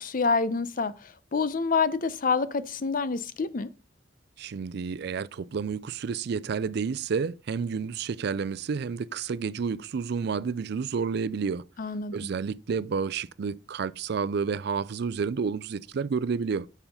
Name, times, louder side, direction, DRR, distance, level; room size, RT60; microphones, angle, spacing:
voice 1, 0.0-3.7 11.8-12.3, left 4 dB, 50° left, 0.6 m, -27 dB
voice 2, 4.4-11.6 12.1-16.7, right 5 dB, 60° right, 0.4 m, -30 dB
7.0 x 5.7 x 5.2 m
head